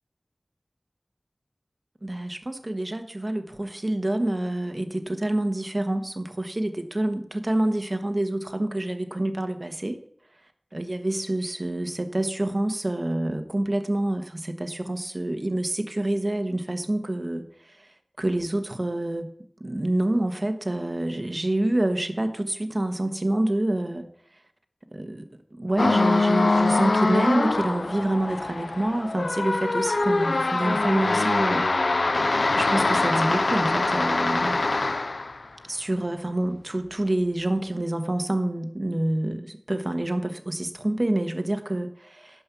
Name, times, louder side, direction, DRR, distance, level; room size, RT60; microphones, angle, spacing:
voice 1, 2.0-10.0 10.7-17.9 18.2-19.3 19.6-24.0 24.9-31.6 31.9-32.1 32.5-34.5 35.6-42.4, right 1 dB, 45° right, 7 dB, 1.3 m, -27 dB
sound 1, 25.8-35.4, left 3 dB, 85° left, 0.3 m, -23 dB
12.0 x 5.4 x 7.0 m, 0.65 s
wide cardioid pair, 45°, 0 cm